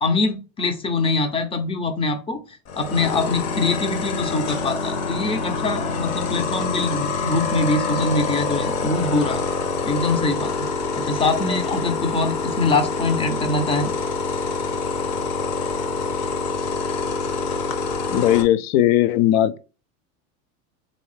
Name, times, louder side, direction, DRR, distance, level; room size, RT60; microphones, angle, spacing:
voice 1, 0.0-9.4 9.9-13.9, left 3 dB, 15° left, 0.4 m, -24 dB
sound 1, 2.7-18.4, left 4 dB, 40° left, 0.7 m, -26 dB
voice 2, 18.1-19.6, left 13 dB, 80° left, 0.6 m, -18 dB
3.2 x 2.7 x 3.2 m
supercardioid pair, 120°, 41 cm